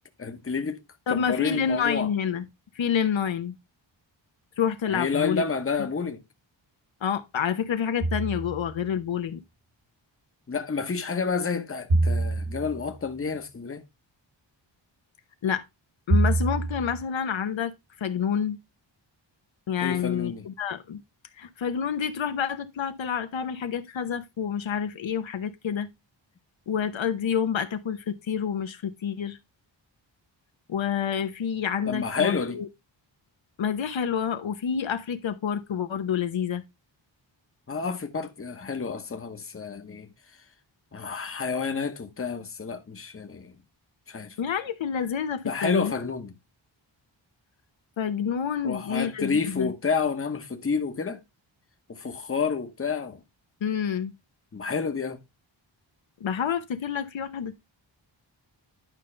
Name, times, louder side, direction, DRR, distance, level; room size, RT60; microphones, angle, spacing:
voice 1, 0.2-0.8 1.1-2.1 4.9-6.2 10.5-13.8 19.8-20.4 31.9-32.6 37.7-40.1 40.9-43.5 44.1-44.4 45.4-46.3 48.6-51.2 51.9-53.2 54.5-55.2, left 5 dB, 30° left, 1.0 m, -29 dB
voice 2, 1.1-2.5 2.7-3.5 4.6-5.5 5.8-5.9 7.0-9.4 15.4-15.6 16.1-18.6 19.7-21.0 21.4-25.9 26.7-29.4 30.7-32.7 33.6-36.6 44.4-45.9 48.0-49.7 53.6-54.1 56.2-57.6, left 7 dB, 80° left, 1.0 m, -28 dB
sound 1, 8.0-8.8 11.9-13.0 16.1-17.0, right 2 dB, 80° right, 3.2 m, -25 dB
11.0 x 5.4 x 3.3 m
wide cardioid pair, 170°, 46 cm